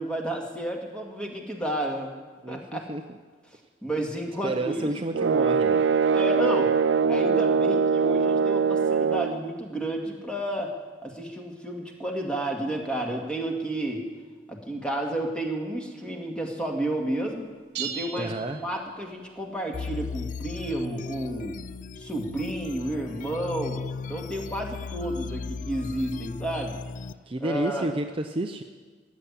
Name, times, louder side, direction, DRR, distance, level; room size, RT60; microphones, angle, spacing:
voice 1, 0.0-2.1 2.5-2.8 3.8-4.9 6.1-6.7 7.1-10.7 11.0-14.1 14.5-17.5 17.8-18.3 18.6-21.6 22.0-23.8 24.1-26.8 27.4-27.9, right 1 dB, 5° left, 0 dB, 2.0 m, -31 dB
voice 2, 2.4-3.1 4.4-5.8 18.2-18.6 27.3-28.6, right 2 dB, 30° right, 5 dB, 0.6 m, -30 dB
sound 1, 5.1-9.4, right 5 dB, 90° right, 0.5 m, -22 dB
sound 2, 17.8-19.3, right 8 dB, 65° right, 1.1 m, -37 dB
sound 3, 19.7-27.1, left 5 dB, 45° left, 0.4 m, -36 dB
14.5 x 8.3 x 9.9 m, 1.4 s
head